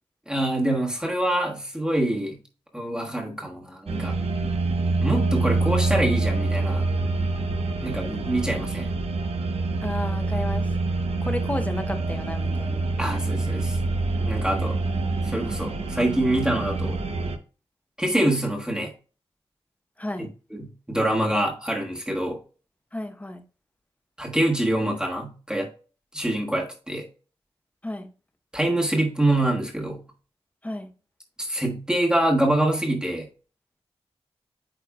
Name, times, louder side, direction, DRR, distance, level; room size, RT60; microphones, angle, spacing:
voice 1, 0.3-2.4 2.7-4.1 5.0-6.9 7.8-9.0 13.0-13.8 14.2-14.8 15.2-17.0 18.0-18.9 20.2-22.4 24.2-25.7 26.1-27.1 28.5-30.0 31.4-33.3, right 1 dB, 5° right, -1 dB, 1.3 m, -25 dB
sound 1, 3.9-17.4, right 3 dB, 80° right, 0.9 m, -26 dB
voice 2, 9.8-10.7 11.2-13.0 20.0-20.3 22.9-23.4 27.8-28.1 30.6-30.9, left 1 dB, 15° left, 7 dB, 0.9 m, -32 dB
8.9 x 4.5 x 2.4 m, 0.35 s
wide cardioid pair, 105°, 10 cm